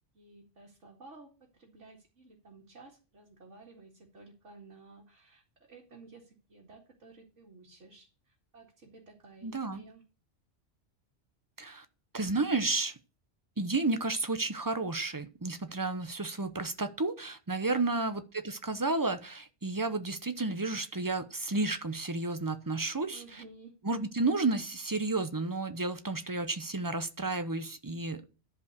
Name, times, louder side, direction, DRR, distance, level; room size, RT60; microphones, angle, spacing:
voice 1, 0.1-10.0 17.7-18.0 23.1-23.8, right 3 dB, 75° right, -2 dB, 2.5 m, -54 dB
voice 2, 9.4-9.8 11.6-11.9 12.1-12.9 13.6-23.2 23.8-28.2, right 3 dB, 20° right, 10 dB, 0.7 m, -32 dB
11.5 x 5.1 x 6.7 m, 0.34 s
omnidirectional pair, 1.2 m